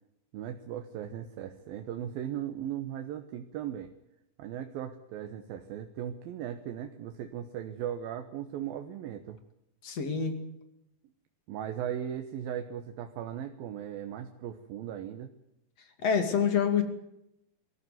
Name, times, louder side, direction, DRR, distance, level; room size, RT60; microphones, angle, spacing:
voice 1, 0.3-3.9 4.4-9.4 11.5-15.3, right 10 dB, 85° right, 7 dB, 3.0 m, -37 dB
voice 2, 9.8-10.4 16.0-16.8, left 7 dB, 50° left, 8 dB, 3.4 m, -26 dB
23.5 x 14.5 x 9.3 m, 0.83 s
omnidirectional pair, 4.1 m